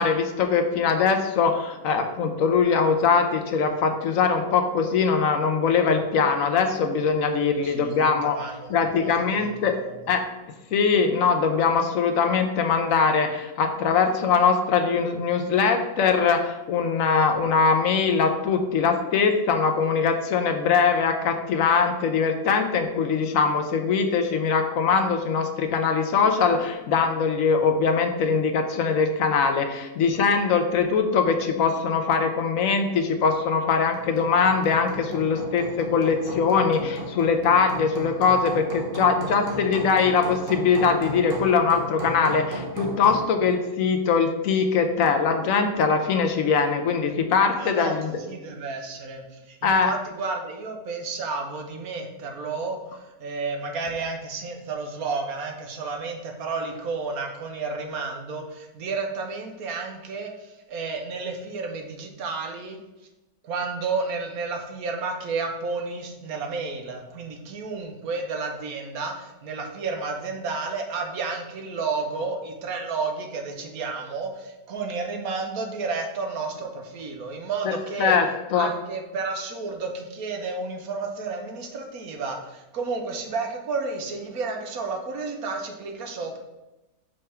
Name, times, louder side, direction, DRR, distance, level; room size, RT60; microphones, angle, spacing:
voice 1, 0.0-9.8 10.1-10.2 10.7-48.1 49.6-49.9 77.6-78.3 78.5-78.7, left 5 dB, 65° left, 6 dB, 1.1 m, -22 dB
voice 2, 7.6-10.0 47.6-62.8 63.4-78.2 78.5-86.4, right 4 dB, 75° right, 3 dB, 1.3 m, -31 dB
Hammer, 33.7-43.4, right 2 dB, 45° right, 1.0 m, -35 dB
5.4 x 3.5 x 5.5 m, 1.0 s
omnidirectional pair, 1.6 m